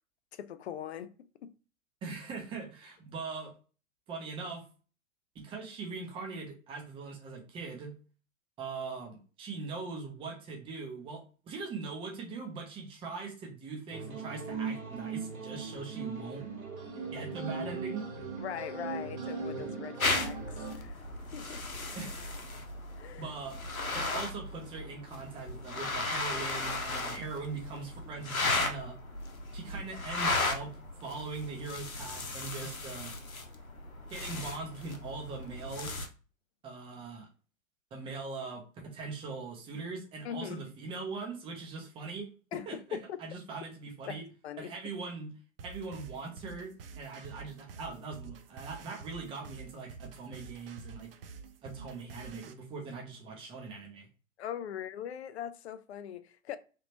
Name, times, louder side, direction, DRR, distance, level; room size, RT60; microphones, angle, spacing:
voice 1, 0.3-1.1 1.4-1.5 18.4-21.1 21.3-21.6 23.0-23.3 40.2-40.6 42.5-43.2 44.1-44.7 54.4-56.6, left 9 dB, 55° left, 0.4 m, -41 dB
voice 2, 2.0-3.5 4.1-4.6 5.3-7.9 8.6-16.5 17.1-18.1 21.9-22.2 23.2-23.6 23.9-29.0 29.5-33.1 34.1-35.9 36.6-37.3 37.9-44.2 44.6-45.3 45.6-51.1 51.6-54.1, right 4 dB, 15° right, 0.7 m, -41 dB
sound 1, 13.9-20.8, right 5 dB, 80° right, 1.2 m, -39 dB
sound 2, 20.0-36.1, left 2 dB, 85° left, 0.8 m, -36 dB
sound 3, 45.6-52.5, right 5 dB, 45° right, 0.4 m, -48 dB
3.3 x 2.9 x 2.8 m
figure-of-eight pair, 110°, 41 cm